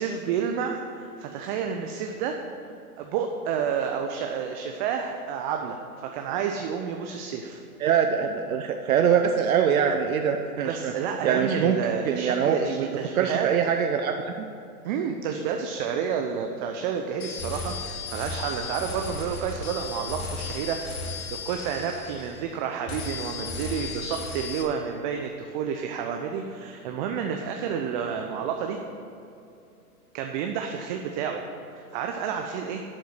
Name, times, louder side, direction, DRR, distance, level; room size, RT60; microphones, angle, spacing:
voice 1, 0.0-2.4 3.0-7.6 10.6-13.5 14.8-28.8 30.1-31.4 31.7-32.8, right 7 dB, 30° right, 3 dB, 0.7 m, -30 dB
voice 2, 7.8-10.9 11.2-11.8 12.0-12.9 13.1-14.5, right 7 dB, 65° right, 4 dB, 0.8 m, -23 dB
sound 1, 17.2-22.6 22.9-24.6, left 4 dB, 65° left, 2.6 m, -35 dB
11.5 x 4.6 x 8.1 m, 2.6 s
hypercardioid pair, 125°, 45 cm